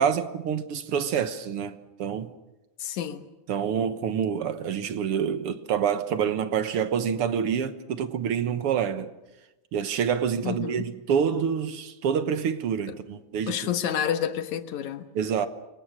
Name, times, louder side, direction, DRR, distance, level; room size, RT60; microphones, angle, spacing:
voice 1, 0.0-2.3 3.5-9.1 9.7-13.6 15.1-15.5, right 7 dB, 60° right, 1.9 m, -27 dB
voice 2, 2.8-3.3 10.4-10.9 13.5-15.1, left 9 dB, 80° left, 2.8 m, -29 dB
28.5 x 24.5 x 6.3 m
omnidirectional pair, 3.3 m